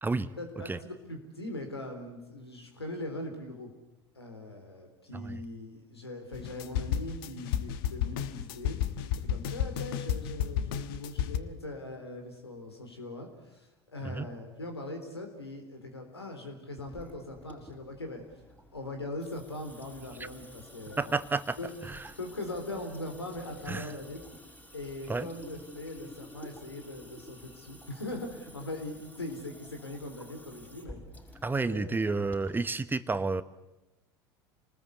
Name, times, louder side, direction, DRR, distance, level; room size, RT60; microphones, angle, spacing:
voice 1, 0.4-3.7 4.2-8.8 9.2-18.2 18.7-21.2 21.6-21.8 22.2-24.2 24.7-31.0 31.7-32.1, left 1 dB, 90° left, 5 dB, 3.8 m, -41 dB
sound 1, 6.3-11.4, left 10 dB, 65° left, 1.2 m, -32 dB
Water tap faucet / Sink (filling or washing) / Drip, 16.8-32.7, left 1 dB, 10° left, 5.9 m, -51 dB
voice 2, 21.0-21.6 21.9-22.0 23.7-23.9 25.1-25.3 31.4-33.4, right 3 dB, 15° right, 13 dB, 1.1 m, -30 dB
27.5 x 20.0 x 8.3 m, 0.96 s
figure-of-eight pair, 70°, 13 cm